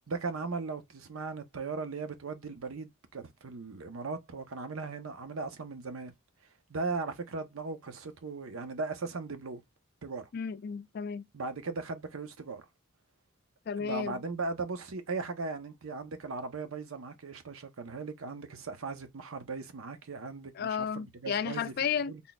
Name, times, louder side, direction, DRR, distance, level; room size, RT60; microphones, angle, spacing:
voice 1, 0.1-6.1 6.7-9.6 10.0-10.3 11.3-12.6 13.8-21.7 22.1-22.2, right 3 dB, 90° right, 0.7 m, -38 dB
voice 2, 10.3-11.2 13.7-14.2 20.6-22.1, left 7 dB, 50° left, 0.3 m, -33 dB
4.0 x 3.6 x 2.2 m
head